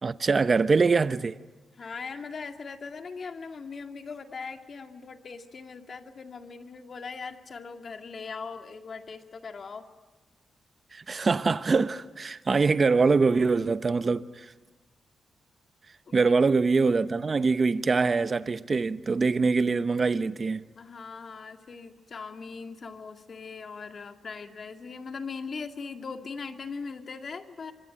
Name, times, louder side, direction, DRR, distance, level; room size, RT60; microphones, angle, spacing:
voice 1, 0.0-1.4 10.9-14.5 16.1-20.6, right 4 dB, 40° right, 0.9 m, -24 dB
voice 2, 1.8-9.9 16.1-16.3 20.8-27.7, left 5 dB, 50° left, 2.1 m, -40 dB
25.5 x 23.5 x 9.0 m
cardioid pair, 100°, 0 cm